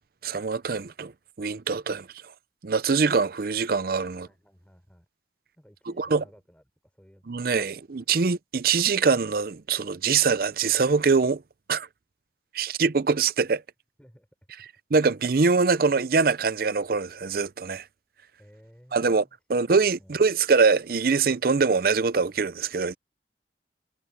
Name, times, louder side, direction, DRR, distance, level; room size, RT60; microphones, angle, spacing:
voice 1, 0.2-1.1 1.4-2.1 2.6-4.3 6.0-6.2 7.3-11.4 11.7-11.9 12.5-13.6 14.9-17.8 18.9-19.2 19.5-22.9, right 5 dB, 55° right, 0.6 m, -23 dB
voice 2, 4.1-5.1 5.6-7.8 14.0-14.3 14.6-14.7 18.4-19.6 20.0-20.4, equal, 5° left, 4.5 m, -56 dB
head